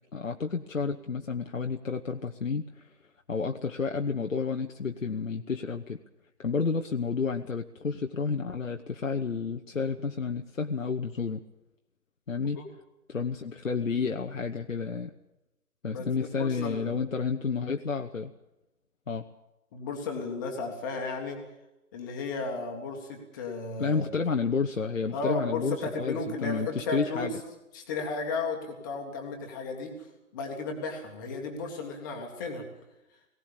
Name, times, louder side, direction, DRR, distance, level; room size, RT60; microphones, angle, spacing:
voice 1, 0.1-2.9 3.3-6.0 6.4-11.4 12.3-12.6 13.1-15.1 15.8-18.3 19.1-19.2 23.8-27.3, left 5 dB, 60° left, 4 dB, 1.0 m, -30 dB
voice 2, 15.9-17.0 19.7-21.4 21.9-24.0 25.1-27.4 27.7-29.9 30.3-32.7, left 3 dB, 15° left, 2 dB, 1.7 m, -34 dB
18.5 x 17.5 x 8.6 m, 0.94 s
figure-of-eight pair, 145°, 45 cm